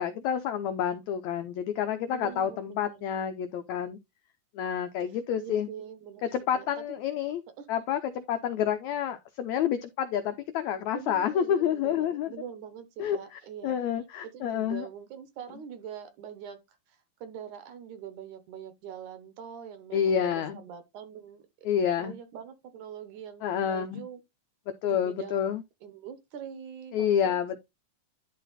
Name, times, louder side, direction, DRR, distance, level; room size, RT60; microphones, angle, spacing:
voice 1, 0.0-4.0 4.5-5.7 6.3-7.4 7.7-12.3 13.0-14.9 19.9-20.6 21.6-22.1 23.4-24.0 24.8-25.6 26.9-27.6, left 9 dB, 80° left, 1.6 m, -29 dB
voice 2, 2.1-3.1 5.1-6.2 6.5-6.8 7.6-7.7 10.9-13.8 14.2-21.7 22.0-24.2 24.9-27.6, right 8 dB, 65° right, 2.3 m, -44 dB
11.0 x 4.0 x 4.1 m
omnidirectional pair, 4.0 m